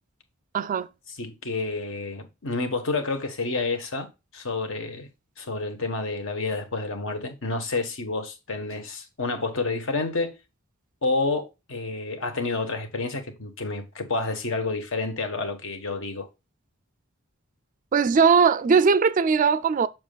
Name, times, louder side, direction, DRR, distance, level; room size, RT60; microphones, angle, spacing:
voice 1, 0.5-0.9 17.9-19.9, right 5 dB, 40° right, 0.3 m, -19 dB
voice 2, 1.1-4.1 4.3-5.1 5.4-10.4 11.0-16.3, left 3 dB, 65° left, 1.3 m, -29 dB
7.3 x 6.2 x 2.3 m
head